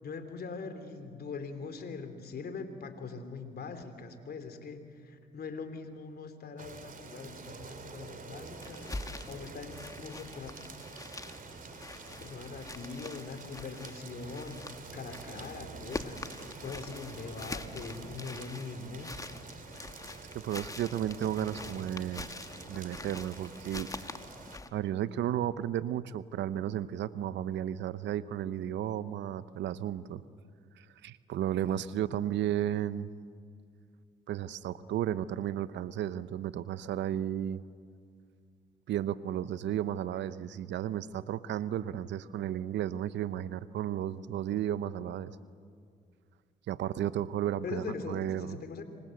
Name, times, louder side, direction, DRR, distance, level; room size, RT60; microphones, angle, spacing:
voice 1, 0.0-10.5 11.3-11.4 12.1-16.3 16.6-19.2 47.6-48.8, left 4 dB, 55° left, 8 dB, 3.3 m, -42 dB
sound 1, 6.6-24.6, right 4 dB, 45° right, 2.9 m, -48 dB
sound 2, 8.5-24.7, left 2 dB, 20° left, 1.4 m, -45 dB
voice 2, 20.3-22.3 22.7-23.9 24.7-30.2 30.8-33.1 34.3-37.6 38.9-45.3 46.7-48.6, right 11 dB, 75° right, 15 dB, 0.9 m, -33 dB
26.5 x 24.0 x 7.9 m, 2.2 s
supercardioid pair, 60°, 19 cm